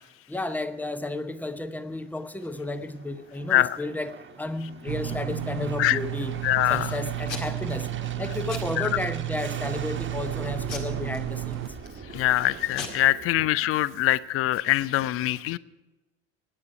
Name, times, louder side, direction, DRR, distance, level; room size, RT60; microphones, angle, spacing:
voice 1, 0.3-6.4 6.7-7.9 8.2-11.6, left 2 dB, 5° left, 12 dB, 0.8 m, -33 dB
Aircraft, 1.6-14.3, right 6 dB, 30° right, 1.4 m, -43 dB
Packing tape duct tape / Tearing, 4.5-5.9 6.3-6.8 7.3-7.7 8.0-8.2 8.5-9.2 9.6-10.0 10.7-12.0 12.4-12.5 12.7-12.9, left 5 dB, 65° left, 2.0 m, -39 dB
sound 1, 4.9-11.7, right 14 dB, 50° right, 0.7 m, -32 dB
voice 2, 6.4-6.9 8.8-8.9 12.1-15.6, left 15 dB, 35° left, 20 dB, 0.5 m, -23 dB
22.5 x 9.6 x 4.7 m, 1.1 s
figure-of-eight pair, 60°, 39 cm